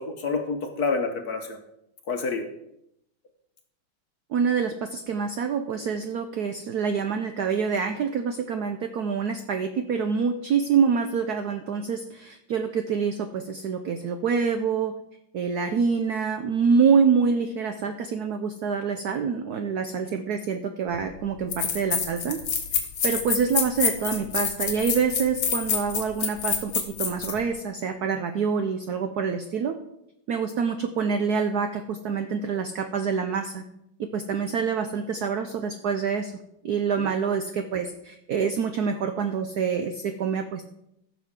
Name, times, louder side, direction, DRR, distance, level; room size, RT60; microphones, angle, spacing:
voice 1, 0.0-1.6 2.1-2.4 37.0-37.1, left 4 dB, 55° left, 4 dB, 1.2 m, -28 dB
voice 2, 4.3-14.9 15.3-22.4 23.0-29.8 30.3-33.6 34.0-36.3 36.6-40.6, right 6 dB, 75° right, 7 dB, 0.9 m, -26 dB
sound 1, 20.9-21.0 21.5-27.4, left 6 dB, 85° left, 2.2 m, -27 dB
15.0 x 6.2 x 3.6 m, 0.80 s
omnidirectional pair, 2.3 m